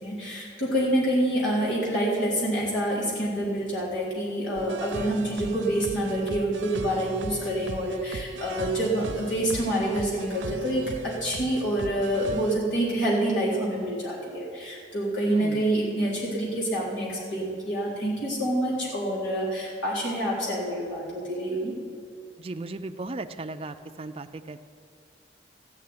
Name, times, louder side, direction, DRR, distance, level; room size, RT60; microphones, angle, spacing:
voice 1, 0.0-21.8, right 1 dB, 85° left, -6 dB, 4.0 m, -27 dB
sound 1, 4.6-12.6, right 2 dB, 90° right, 0.7 m, -38 dB
voice 2, 15.3-15.7 22.4-24.6, right 2 dB, 30° right, 7 dB, 0.4 m, -36 dB
14.0 x 6.6 x 9.6 m, 2.2 s
head